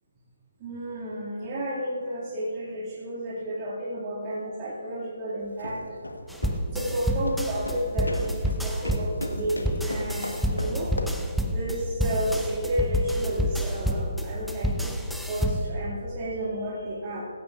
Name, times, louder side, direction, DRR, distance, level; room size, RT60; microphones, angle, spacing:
voice 1, 0.6-5.8 6.7-10.9 11.5-17.3, right 1 dB, 30° right, -8 dB, 2.1 m, -31 dB
sound 1, 5.4-11.3, left 1 dB, 85° left, 1.3 m, -37 dB
sound 2, 6.3-15.8, equal, ahead, 0.5 m, -28 dB
15.5 x 15.5 x 2.5 m, 2.4 s
figure-of-eight pair, 145°, 0 cm